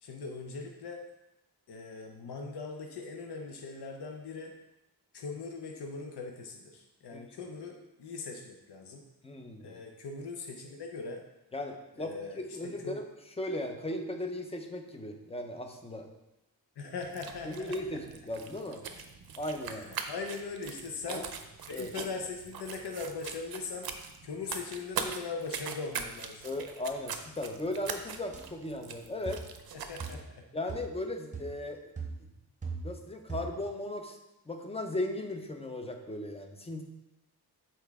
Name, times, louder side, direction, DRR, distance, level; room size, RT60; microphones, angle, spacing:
voice 1, 0.0-1.0 1.7-4.5 5.1-9.0 9.6-11.2 12.0-13.0 16.8-18.0 19.7-21.3 21.7-23.9 24.2-26.5 29.8-30.5, left 4 dB, 75° left, 2 dB, 0.8 m, -40 dB
voice 2, 9.2-9.8 11.5-13.0 13.4-16.1 17.4-18.9 19.4-19.9 21.1-21.2 21.7-21.9 26.4-29.4 30.5-31.8 32.8-34.2 34.5-36.8, left 1 dB, 15° left, 4 dB, 0.5 m, -37 dB
sound 1, 17.0-30.2, right 6 dB, 60° right, 0.6 m, -42 dB
sound 2, 28.3-28.5 29.2-29.5 30.0-30.3 30.7-31.0 31.3-31.6 32.0-33.0 33.3-33.7, right 4 dB, 20° right, 0.8 m, -40 dB
7.0 x 4.4 x 3.5 m, 0.92 s
wide cardioid pair, 165°, 40 cm